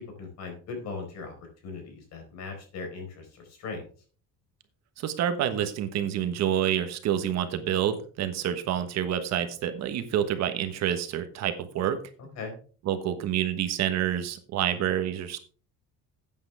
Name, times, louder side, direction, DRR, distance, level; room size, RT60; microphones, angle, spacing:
voice 1, 0.2-1.3 1.6-3.8 12.4-12.6, left 4 dB, 55° left, 4 dB, 4.5 m, -38 dB
voice 2, 5.0-12.0 12.8-15.4, right 10 dB, 55° right, 9 dB, 1.3 m, -28 dB
13.0 x 8.9 x 3.5 m, 0.41 s
cardioid pair, 175°, 32 cm